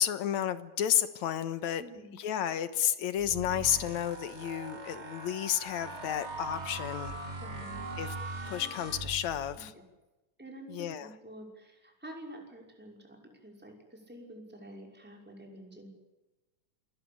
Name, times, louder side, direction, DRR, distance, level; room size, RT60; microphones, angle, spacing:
voice 1, 0.0-1.8 2.1-7.2 8.0-8.1 8.5-9.7 10.7-11.1, left 10 dB, 70° left, 12 dB, 2.5 m, -31 dB
voice 2, 1.8-2.1 7.3-7.8 9.6-9.7 10.4-15.9, right 1 dB, 5° right, 0 dB, 5.4 m, -48 dB
sound 1, 3.2-9.6, right 2 dB, 25° right, 2.3 m, -41 dB
27.5 x 19.0 x 8.8 m, 1.1 s
omnidirectional pair, 3.5 m